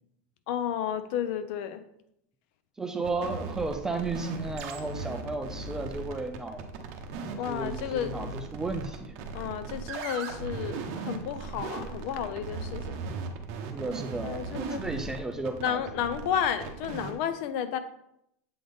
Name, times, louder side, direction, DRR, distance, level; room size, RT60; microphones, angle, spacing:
voice 1, 0.5-1.8 7.4-8.1 9.3-13.0 14.2-14.8 15.6-17.8, left 9 dB, 50° left, 11 dB, 0.5 m, -32 dB
voice 2, 2.8-6.7 7.3-9.2 13.7-16.0, right 3 dB, 5° right, 5 dB, 0.4 m, -34 dB
sound 1, 3.0-17.2, right 4 dB, 50° right, 0.8 m, -38 dB
7.6 x 3.9 x 3.4 m, 0.76 s
supercardioid pair, 165°, 7 cm